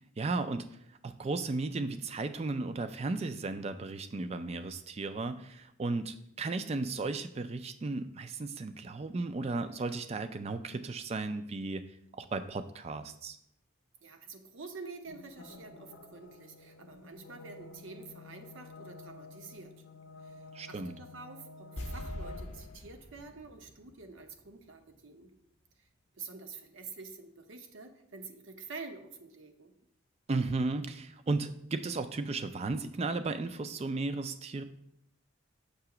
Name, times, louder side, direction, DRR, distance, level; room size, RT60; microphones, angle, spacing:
voice 1, 0.2-0.7 1.0-11.8 12.1-13.4 20.5-20.9 30.3-34.6, right 3 dB, 30° right, 10 dB, 0.3 m, -35 dB
voice 2, 14.0-19.7 20.2-25.3 26.1-29.7, right 4 dB, 65° right, 6 dB, 0.7 m, -48 dB
sound 1, 15.1-22.8, left 3 dB, 70° left, 0.6 m, -51 dB
sound 2, 21.8-25.0 25.2-25.3, left 1 dB, 30° left, 0.7 m, -44 dB
6.7 x 2.9 x 5.8 m, 0.74 s
head